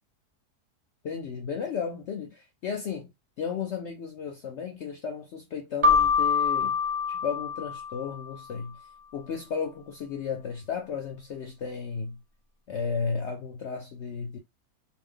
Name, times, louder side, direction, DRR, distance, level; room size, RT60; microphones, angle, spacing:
voice 1, 1.0-3.1 3.4-6.8 7.1-8.8 9.1-12.2 12.7-14.4, left 6 dB, 65° left, 0.7 m, -34 dB
Keyboard (musical), 5.8-8.4, left 5 dB, 40° right, 0.4 m, -25 dB
2.7 x 2.2 x 3.6 m
omnidirectional pair, 1.7 m